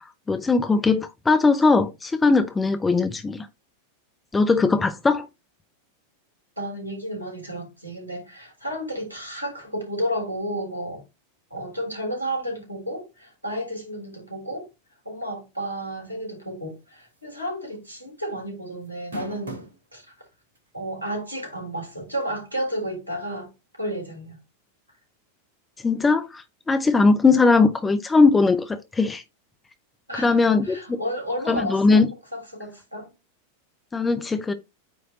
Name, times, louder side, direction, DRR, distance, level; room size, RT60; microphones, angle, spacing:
voice 1, 0.3-3.5 4.3-5.3 25.8-26.4 26.7-29.2 30.1-31.0 31.5-32.1 33.9-34.5, left 4 dB, 10° left, 0.7 m, -19 dB
voice 2, 6.6-11.0 11.5-14.7 15.1-20.0 20.7-23.5 23.8-24.4 30.1-32.0 32.3-33.1, equal, 90° left, 3.5 m, -32 dB
sound 1, 17.2-17.4 17.7-17.8 18.8-19.8 20.5-20.6 22.2-22.3, right 1 dB, 70° right, 2.8 m, -37 dB
8.8 x 3.4 x 3.8 m
figure-of-eight pair, 90°, 0 cm